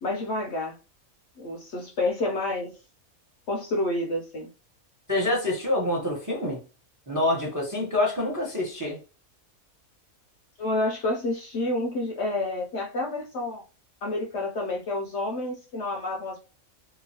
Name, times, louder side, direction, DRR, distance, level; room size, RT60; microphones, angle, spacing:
voice 1, 0.0-0.8 1.4-2.7 3.5-4.5 10.6-13.6 14.0-16.4, left 2 dB, 65° left, 0.8 m, -29 dB
voice 2, 5.1-6.6 7.1-9.0, left 1 dB, 20° right, 0.6 m, -26 dB
3.0 x 2.4 x 2.7 m
omnidirectional pair, 1.5 m